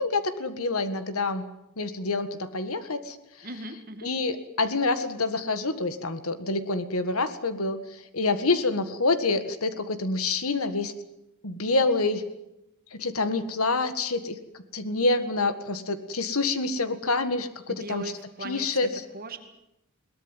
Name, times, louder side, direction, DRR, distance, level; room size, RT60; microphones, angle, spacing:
voice 1, 0.0-1.4 1.8-3.2 4.0-7.8 8.1-10.9 11.4-12.2 12.9-14.4 14.7-18.1 18.4-18.9, left 3 dB, 70° left, 11 dB, 1.8 m, -27 dB
voice 2, 3.4-4.1 17.7-18.7 19.1-19.4, right 1 dB, 40° right, 7 dB, 2.2 m, -38 dB
21.5 x 18.5 x 9.2 m, 0.86 s
head